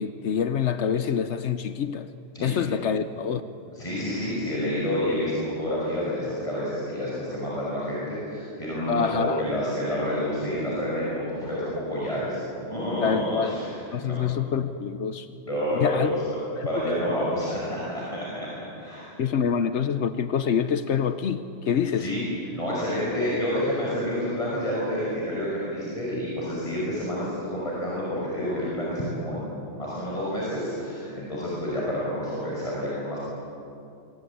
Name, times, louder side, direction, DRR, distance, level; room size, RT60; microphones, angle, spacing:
voice 1, 0.0-2.1 2.4-3.4 8.9-9.5 13.0-13.6 13.9-15.3 15.7-16.1 16.6-16.7 19.2-22.1, left 7 dB, 80° left, 10 dB, 1.1 m, -26 dB
voice 2, 3.7-12.4 12.7-13.7 14.0-14.2 15.5-16.4 16.6-19.1 21.9-22.2 22.5-33.2, equal, 30° left, -6 dB, 6.2 m, -29 dB
26.5 x 22.5 x 8.6 m, 2.6 s
omnidirectional pair, 1.2 m